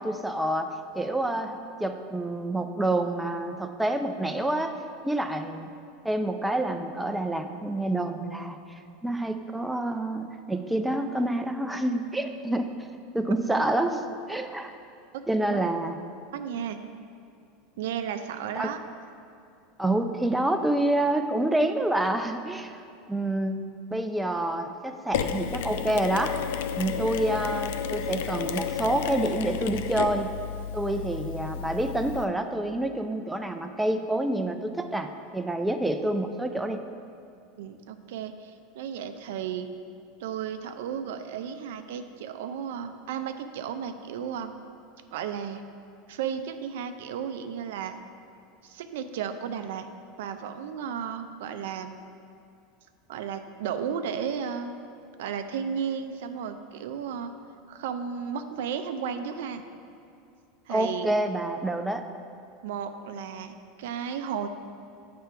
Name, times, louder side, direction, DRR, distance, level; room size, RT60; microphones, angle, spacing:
voice 1, 0.0-4.7 5.0-5.7 6.0-8.6 9.0-12.7 13.1-14.8 15.3-16.0 18.5-18.7 19.8-22.8 23.1-23.6 23.9-26.4 26.8-30.3 30.7-36.8 60.7-62.1, right 1 dB, 5° right, 6 dB, 0.4 m, -28 dB
voice 2, 16.3-16.8 17.8-18.8 26.8-27.1 37.6-39.7 40.2-44.6 45.1-45.6 46.1-48.0 48.6-49.9 50.2-52.0 53.1-54.8 55.2-57.3 57.7-59.6 60.7-61.1 62.6-64.5, right 7 dB, 80° right, 8 dB, 0.4 m, -34 dB
Mechanisms, 25.1-32.2, left 7 dB, 75° left, 0.3 m, -32 dB
7.4 x 3.4 x 5.6 m, 2.5 s
supercardioid pair, 115°, 0 cm